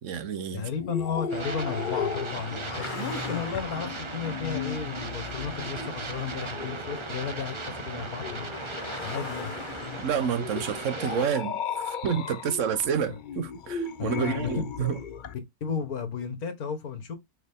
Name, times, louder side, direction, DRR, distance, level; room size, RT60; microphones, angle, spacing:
voice 1, 0.0-0.7 10.0-15.0, right 7 dB, 60° right, 1.1 m, -29 dB
voice 2, 0.5-8.5 9.0-9.5 13.1-13.2 14.0-14.9 15.6-17.1, left 6 dB, 80° left, 1.9 m, -33 dB
sound 1, 0.7-15.3, left 6 dB, 60° left, 0.5 m, -37 dB
sound 2, 1.3-11.3, right 3 dB, 25° right, 0.7 m, -38 dB
Car passing by, 2.6-10.4, left 4 dB, 40° left, 1.0 m, -42 dB
6.3 x 4.3 x 3.6 m
omnidirectional pair, 1.6 m